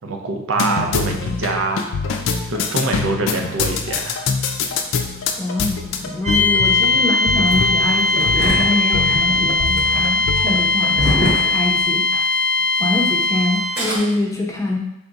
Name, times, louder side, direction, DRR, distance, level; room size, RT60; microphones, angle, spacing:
voice 1, 0.0-1.9 2.5-4.3, right 3 dB, 85° right, 3 dB, 0.6 m, -24 dB
sound 1, 0.5-11.5, left 5 dB, 80° left, 0.4 m, -25 dB
voice 2, 5.4-12.1 12.8-14.8, left 2 dB, 15° left, 0 dB, 0.5 m, -24 dB
sound 2, 6.2-14.0, left 3 dB, 40° right, 0.5 m, -19 dB
Engine starting, 7.5-12.3 12.6-12.7 13.5-14.0, equal, 60° right, 1.1 m, -25 dB
3.5 x 2.4 x 3.9 m, 0.87 s
head